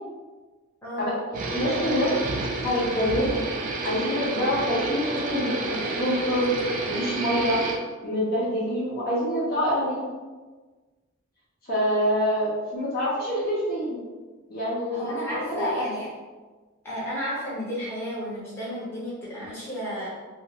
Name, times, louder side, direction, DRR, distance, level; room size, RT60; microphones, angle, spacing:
sound 1, 1.3-7.8, right 3 dB, 40° right, 0.3 m, -30 dB
voice 1, 1.4-2.1 2.6-3.4 3.8-6.5 6.9-7.6 8.0-10.0 11.6-14.0 14.5-15.8, equal, 45° left, -7 dB, 0.8 m, -26 dB
voice 2, 14.9-16.1 16.8-20.1, equal, 10° left, -9 dB, 0.9 m, -32 dB
2.5 x 2.5 x 2.9 m, 1.3 s
head